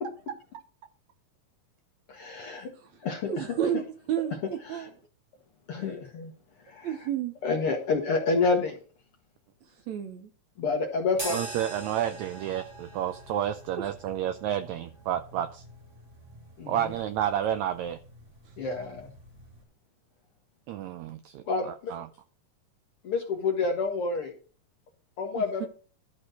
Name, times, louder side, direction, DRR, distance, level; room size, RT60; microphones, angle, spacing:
voice 1, 2.1-2.7 3.0-3.6 4.7-4.9 5.7-6.3 6.7-7.0 7.4-8.8 10.6-11.4 16.6-16.7 18.6-19.1 21.5-21.9 23.0-24.3 25.2-25.7, left 4 dB, 60° left, 1.6 m, -28 dB
voice 2, 3.2-3.8 4.1-4.9 6.8-7.3 9.9-10.3 25.4-25.7, right 10 dB, 70° right, 1.9 m, -31 dB
sound 1, 11.1-19.6, right 1 dB, 25° right, 2.3 m, -44 dB
voice 3, 11.3-15.6 16.7-18.0 20.7-22.1, right 10 dB, 90° right, 1.6 m, -30 dB
12.0 x 4.3 x 6.3 m
omnidirectional pair, 3.9 m